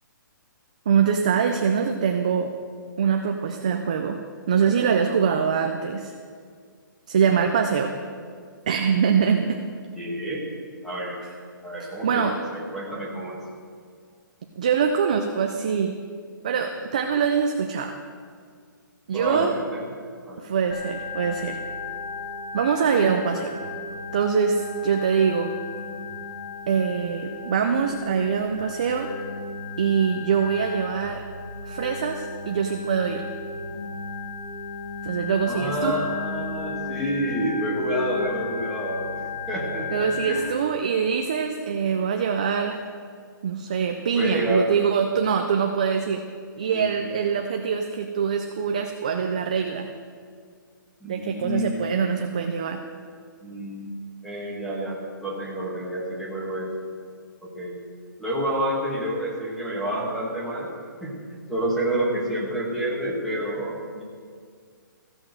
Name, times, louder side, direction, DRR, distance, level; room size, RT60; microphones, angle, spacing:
voice 1, 0.9-2.5 3.0-4.2 4.5-6.1 7.1-7.9 8.7-9.6 11.8-12.4 14.6-16.0 16.4-18.0 19.1-19.5 20.4-21.6 22.5-23.6 24.1-25.5 26.7-29.1 29.8-31.2 31.7-33.2 35.0-35.9 39.9-42.9 43.4-46.2 46.6-49.9 51.0-52.8, right 6 dB, 20° right, 5 dB, 0.3 m, -24 dB
voice 2, 9.9-10.5 10.8-11.2 11.6-13.4 19.1-19.8 20.2-20.4 35.5-40.5 44.1-44.7 46.7-47.1 51.0-51.7 53.4-54.0 54.2-56.7 57.4-57.7 58.2-60.7 61.0-61.1 61.5-64.0, right 1 dB, ahead, -6 dB, 1.3 m, -29 dB
Organ, 20.7-40.4, left 4 dB, 35° left, 1.8 m, -35 dB
15.0 x 6.1 x 7.6 m, 2.1 s
hypercardioid pair, 180°, 11 cm